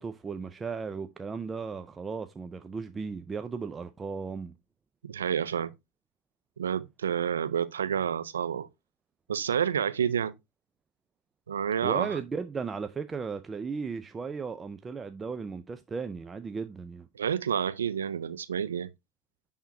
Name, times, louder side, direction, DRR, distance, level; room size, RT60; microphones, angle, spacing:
voice 1, 0.0-4.5 11.8-17.1, right 5 dB, 20° right, 0.5 m, -36 dB
voice 2, 5.0-5.7 6.6-8.7 9.3-10.3 11.5-12.2 17.1-18.9, right 8 dB, 85° right, 0.5 m, -29 dB
10.5 x 3.6 x 2.7 m
hypercardioid pair, 95°, 0 cm